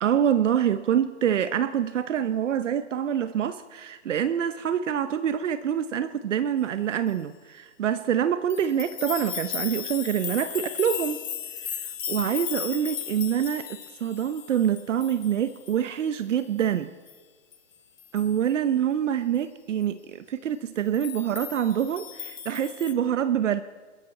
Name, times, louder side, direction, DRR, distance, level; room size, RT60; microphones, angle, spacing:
voice 1, 0.0-11.2 11.8-13.7 14.0-16.9 18.1-23.6, right 9 dB, 75° right, 12 dB, 0.9 m, -26 dB
sound 1, 8.5-15.8 16.1-16.2 16.6-16.7 17.1-17.2 17.5-17.6 18.0-18.5 20.9-22.9, left 9 dB, 80° left, 1.5 m, -36 dB
29.0 x 10.5 x 4.2 m, 1.4 s
hypercardioid pair, 170°, 37 cm